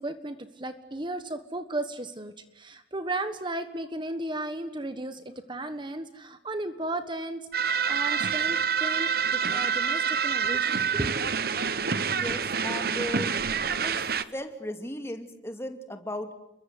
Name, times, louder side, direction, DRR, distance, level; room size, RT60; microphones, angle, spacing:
voice 1, 0.0-11.2, right 1 dB, 25° right, 10 dB, 1.4 m, -35 dB
sound 1, 7.5-14.2, right 6 dB, 60° right, 1.2 m, -27 dB
voice 2, 12.1-13.3 13.7-14.0 14.3-16.3, left 1 dB, 15° left, 6 dB, 2.5 m, -36 dB
30.0 x 22.5 x 8.1 m, 0.83 s
head